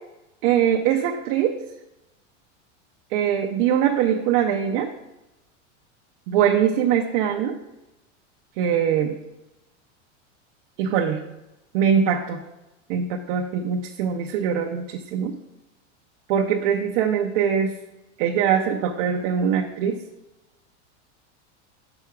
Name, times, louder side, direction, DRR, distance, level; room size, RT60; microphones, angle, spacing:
voice 1, 0.4-1.6 3.1-4.9 6.3-7.5 8.6-9.2 10.8-11.2 11.7-12.4 12.9-15.3 16.3-17.7 18.2-20.0, right 8 dB, 45° right, 2 dB, 0.6 m, -22 dB
6.2 x 5.8 x 4.7 m, 0.94 s
supercardioid pair, 165°, 37 cm